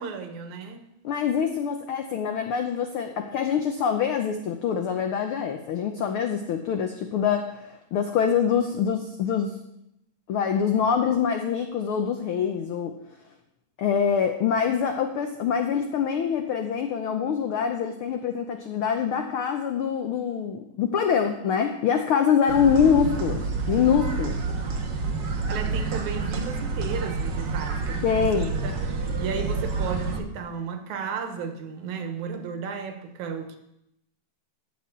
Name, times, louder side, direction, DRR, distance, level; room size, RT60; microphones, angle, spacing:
voice 1, 0.0-0.9 25.5-28.8 29.2-33.6, right 6 dB, 80° right, 2.5 m, -34 dB
voice 2, 1.0-9.5 10.3-12.9 13.8-24.4 28.0-28.6, left 7 dB, 85° left, 1.2 m, -25 dB
sound 1, 22.5-30.2, right 4 dB, 55° right, 1.4 m, -28 dB
14.0 x 4.7 x 8.3 m
omnidirectional pair, 3.4 m